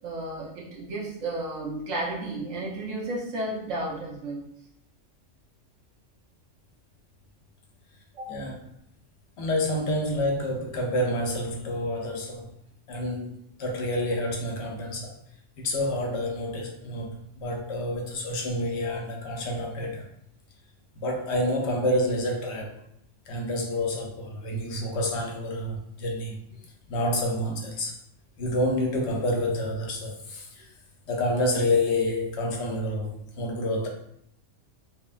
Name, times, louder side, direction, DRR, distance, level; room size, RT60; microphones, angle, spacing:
voice 1, 0.0-4.4 8.2-8.3, right 2 dB, 85° right, -3 dB, 1.2 m, -33 dB
voice 2, 9.4-12.5 12.9-15.1 15.6-20.0 20.9-22.7 23.3-26.4 26.9-27.9 28.4-30.7 31.1-33.9, left 1 dB, 70° left, 1 dB, 0.8 m, -28 dB
3.3 x 2.0 x 2.3 m, 0.73 s
omnidirectional pair, 1.3 m